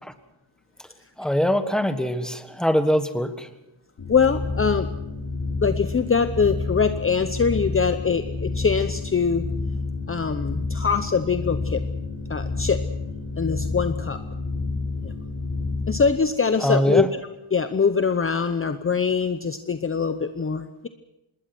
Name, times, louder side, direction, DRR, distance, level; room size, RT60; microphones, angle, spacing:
voice 1, 1.2-3.5 16.6-17.1, equal, ahead, 8 dB, 1.6 m, -23 dB
sound 1, 4.0-16.1, left 3 dB, 50° left, 6.4 m, -29 dB
voice 2, 4.1-5.0 5.6-9.5 10.1-11.8 12.3-12.8 13.4-14.2 15.0-15.1 15.9-17.2 17.5-20.9, left 5 dB, 25° left, 9 dB, 0.8 m, -23 dB
26.0 x 20.5 x 6.1 m, 0.96 s
wide cardioid pair, 145°, 48 cm